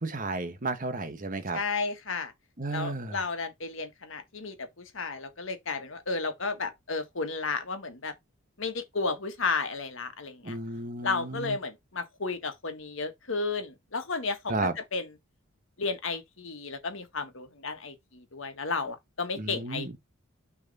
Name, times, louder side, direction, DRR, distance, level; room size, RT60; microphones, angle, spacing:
voice 1, 0.0-1.6 2.6-3.2 10.4-11.6 14.5-14.7 19.3-19.9, right 2 dB, 40° right, 1.2 m, -33 dB
voice 2, 1.5-2.3 2.7-8.1 8.6-10.6 11.0-15.1 15.8-20.0, left 4 dB, 60° left, 1.5 m, -33 dB
6.3 x 3.6 x 5.4 m
head